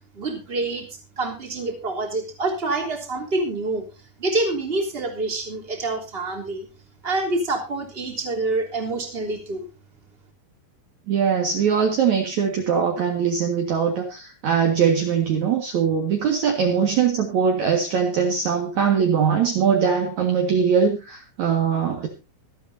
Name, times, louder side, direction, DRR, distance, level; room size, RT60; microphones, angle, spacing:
voice 1, 0.1-0.9 1.2-3.9 4.2-6.7 7.0-9.6, right 2 dB, 15° right, 1 dB, 3.2 m, -26 dB
voice 2, 11.1-22.1, right 7 dB, 55° right, 2 dB, 2.7 m, -21 dB
25.0 x 8.8 x 2.7 m, 0.29 s
omnidirectional pair, 4.4 m